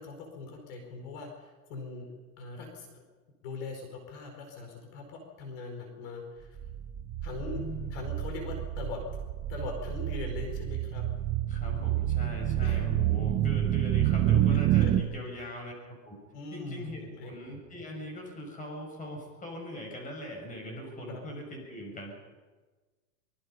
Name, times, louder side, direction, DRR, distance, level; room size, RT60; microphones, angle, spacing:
voice 1, 0.0-2.1 2.4-3.0 3.4-6.6 7.2-7.6 7.9-9.0 9.5-11.0 12.6-12.8 14.8-14.9 15.4-15.5 16.3-17.3 21.1-21.2, left 3 dB, 50° left, 3 dB, 4.8 m, -41 dB
sound 1, 6.6-15.0, right 12 dB, 25° right, 0.8 m, -28 dB
voice 2, 7.5-8.1 11.5-16.2 16.5-22.1, equal, 15° left, 2 dB, 5.9 m, -41 dB
24.5 x 21.0 x 5.6 m, 1.3 s
supercardioid pair, 145°, 45 cm